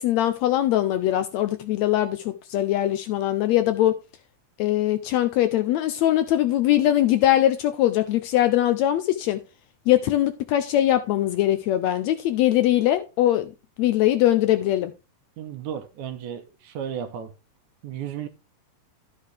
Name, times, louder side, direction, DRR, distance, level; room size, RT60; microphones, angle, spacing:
voice 1, 0.0-4.0 4.6-9.4 9.9-13.5 13.8-14.9, left 13 dB, 75° left, 1.7 m, -21 dB
voice 2, 15.4-17.3 17.8-18.3, right 9 dB, 75° right, 2.3 m, -34 dB
12.5 x 6.5 x 3.4 m
omnidirectional pair, 3.6 m